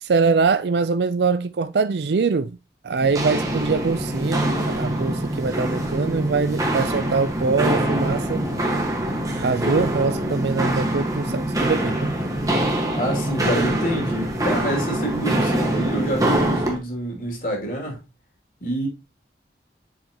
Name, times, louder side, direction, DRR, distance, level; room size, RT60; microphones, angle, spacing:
voice 1, 0.0-2.6 2.8-8.4 9.4-12.1, right 4 dB, 70° right, 0.4 m, -23 dB
Walk footsteps, 3.0-16.8, right 1 dB, 20° right, 1.4 m, -24 dB
voice 2, 12.9-18.0 18.6-18.9, equal, 50° left, 2.7 m, -27 dB
7.5 x 5.3 x 2.9 m
head